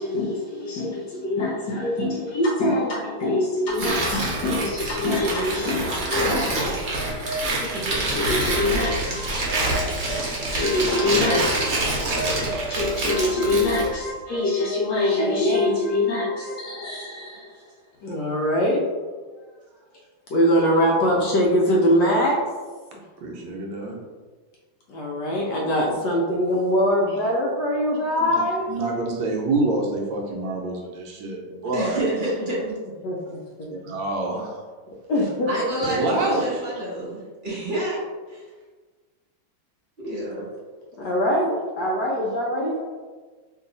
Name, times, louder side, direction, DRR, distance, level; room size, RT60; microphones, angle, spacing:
voice 1, 0.0-7.7 8.0-17.6 18.0-18.8 20.3-22.4 22.9-23.0 24.9-28.7 33.0-33.1 35.1-35.5 35.7-36.2 41.0-42.8, left 1 dB, 70° left, -3 dB, 1.0 m, -24 dB
Tearing, 3.7-13.9, right 2 dB, 55° right, 1.1 m, -26 dB
voice 2, 5.2-5.7 7.5-8.2 31.7-32.7 35.5-38.0 38.3-38.4 40.0-40.5, right 1 dB, 40° right, -6 dB, 0.7 m, -29 dB
voice 3, 23.2-24.0 28.2-28.4 28.7-32.1 33.7-34.6 35.8-36.7, right 2 dB, 75° right, 0 dB, 1.3 m, -27 dB
3.1 x 2.8 x 3.8 m, 1.4 s
omnidirectional pair, 2.2 m